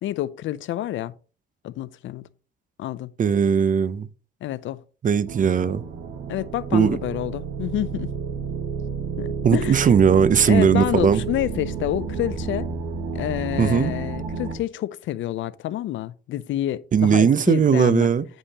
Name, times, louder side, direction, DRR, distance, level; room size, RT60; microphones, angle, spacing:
voice 1, 0.0-1.1 1.6-2.3 2.8-3.1 4.4-4.8 6.3-8.1 9.2-9.9 10.5-12.7 13.1-18.1, left 13 dB, 75° left, 0.5 m, -28 dB
voice 2, 3.2-4.1 5.0-5.8 6.7-7.0 9.4-11.2 13.6-13.9 16.9-18.3, right 7 dB, 40° right, 0.6 m, -18 dB
sound 1, 5.3-14.6, right 5 dB, 85° right, 1.7 m, -31 dB
9.8 x 5.5 x 2.9 m
cardioid pair, 90°, 20 cm